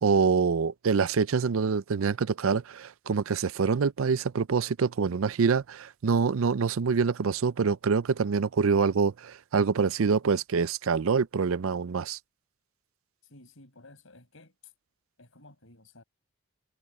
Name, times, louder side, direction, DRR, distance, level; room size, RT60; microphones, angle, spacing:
voice 1, 0.0-12.2, right 5 dB, 70° right, 0.5 m, -25 dB
voice 2, 13.2-14.7 15.2-16.0, left 2 dB, 65° left, 7.8 m, -54 dB
head